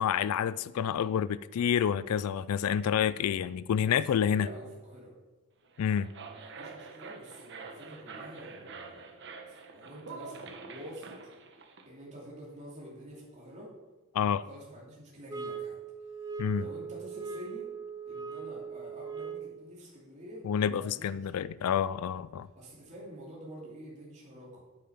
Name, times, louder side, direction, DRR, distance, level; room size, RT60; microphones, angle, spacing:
voice 1, 0.0-4.5 5.8-6.1 14.1-14.4 16.4-16.6 20.5-22.5, left 8 dB, 75° left, 0.3 m, -28 dB
voice 2, 3.8-5.1 6.3-11.1 11.8-13.7 14.4-17.7 18.1-21.5 22.5-24.6, equal, 35° right, 2.7 m, -48 dB
sound 1, 5.6-11.9, right 4 dB, 55° right, 1.2 m, -46 dB
sound 2, 15.3-19.7, right 6 dB, 15° right, 0.5 m, -40 dB
9.0 x 8.5 x 5.7 m
head